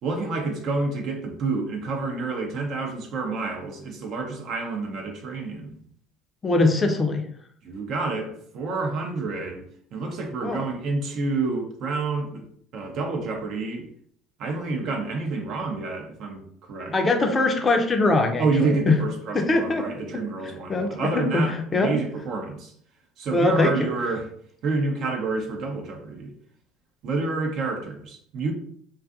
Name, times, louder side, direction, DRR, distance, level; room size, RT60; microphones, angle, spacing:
voice 1, 0.0-5.8 7.6-9.6 9.9-12.5 12.7-13.9 14.4-16.9 18.4-22.7 23.2-24.3 24.6-26.3 27.0-28.5, right 3 dB, 55° right, 2 dB, 0.5 m, -28 dB
voice 2, 6.4-7.2 10.4-10.6 16.9-18.9 19.3-19.9 20.7-21.5 21.7-21.9 23.3-23.9, left 2 dB, 25° left, 4 dB, 0.5 m, -22 dB
2.5 x 2.3 x 2.4 m, 0.62 s
hypercardioid pair, 65°, 0 cm